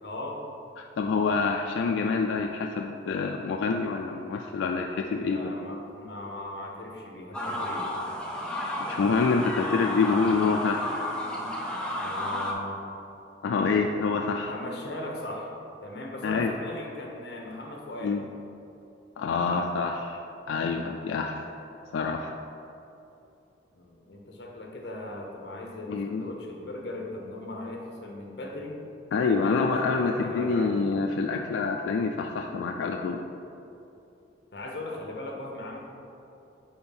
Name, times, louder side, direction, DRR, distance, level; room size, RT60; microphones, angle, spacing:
voice 1, 0.0-0.4 5.0-7.9 11.3-11.6 12.0-12.8 14.5-15.5 15.8-18.2 23.7-28.8 29.3-30.8 34.5-35.8, left 1 dB, 60° left, 0 dB, 0.9 m, -38 dB
voice 2, 0.8-5.5 8.9-10.8 13.4-14.5 16.2-16.5 18.0-18.2 19.2-20.2 20.5-21.4 21.9-22.3 25.9-26.3 29.1-33.2, left 4 dB, 85° left, 2 dB, 0.3 m, -26 dB
sound 1, 7.3-12.5, left 1 dB, 5° left, 0.5 m, -32 dB
4.4 x 4.2 x 5.4 m, 2.9 s
head